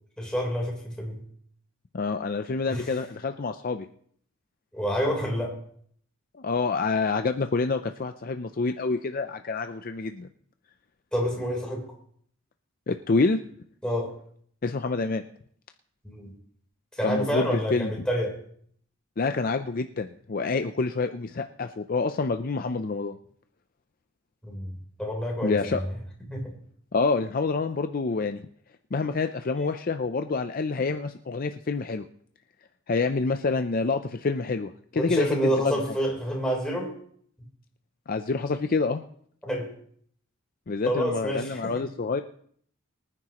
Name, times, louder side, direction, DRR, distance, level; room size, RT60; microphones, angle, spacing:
voice 1, 0.2-1.2 2.7-2.9 4.7-5.5 11.1-11.8 13.8-14.1 16.0-16.3 16.9-18.4 24.4-25.9 26.3-26.6 35.0-36.9 39.4-39.7 40.9-41.7, equal, 5° left, -2 dB, 3.7 m, -28 dB
voice 2, 1.9-3.9 6.3-10.3 12.9-13.4 14.6-15.2 17.0-17.9 19.2-23.2 25.4-25.8 26.9-28.4 28.9-32.0 32.9-35.3 35.6-35.8 38.1-39.0 40.7-42.2, left 4 dB, 45° left, 8 dB, 0.5 m, -27 dB
24.0 x 9.8 x 3.0 m, 0.62 s
head